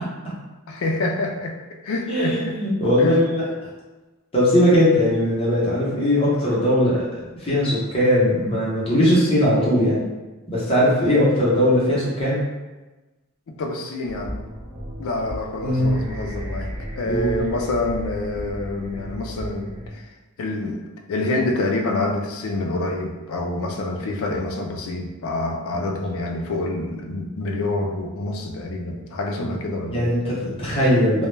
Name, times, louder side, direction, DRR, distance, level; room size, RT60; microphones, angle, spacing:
voice 1, 0.7-1.6 1.8-2.6 3.0-3.1 13.5-14.4 15.0-20.0 20.4-20.8 21.1-30.1, left 2 dB, 70° left, 2 dB, 0.4 m, -27 dB
voice 2, 2.1-3.5 4.3-10.0 10.5-12.4 15.6-15.9 17.0-17.4 25.7-25.8 29.4-29.5 29.9-31.3, equal, 25° left, -7 dB, 0.7 m, -19 dB
sound 1, 14.0-19.9, equal, 70° right, 0.7 m, -34 dB
2.2 x 2.1 x 3.1 m, 1.2 s
head